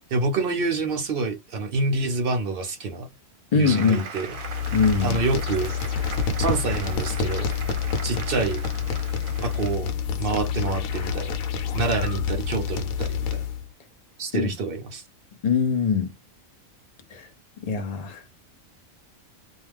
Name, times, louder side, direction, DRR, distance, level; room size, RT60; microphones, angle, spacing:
voice 1, 0.1-3.1 3.5-4.3 5.0-5.7 6.4-7.5 8.0-8.6 9.4-9.9 10.2-11.4 11.7-13.4 14.2-15.0, right 3 dB, 60° right, 0.6 m, -27 dB
voice 2, 3.5-4.1 4.7-5.2 14.3-14.5 15.4-16.1 17.1-17.3 17.6-18.2, left 5 dB, 65° left, 0.3 m, -22 dB
Applause, 3.6-9.8, right 5 dB, 85° right, 1.1 m, -39 dB
sound 1, 4.3-13.7, left 6 dB, 90° left, 1.1 m, -28 dB
2.3 x 2.3 x 3.2 m
omnidirectional pair, 1.4 m